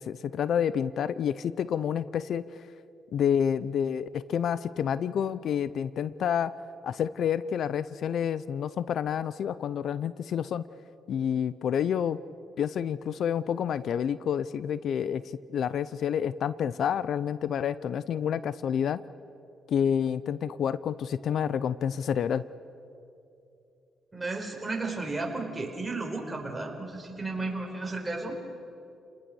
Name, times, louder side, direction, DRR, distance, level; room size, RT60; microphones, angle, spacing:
voice 1, 0.0-2.4 3.1-6.5 6.8-10.6 11.1-12.2 12.6-15.2 15.5-19.0 19.7-22.4, left 8 dB, 65° left, 17 dB, 0.5 m, -29 dB
voice 2, 24.1-28.4, right 3 dB, 15° right, 1 dB, 4.6 m, -33 dB
29.5 x 19.5 x 7.0 m, 2.7 s
cardioid pair, 90°, 0 cm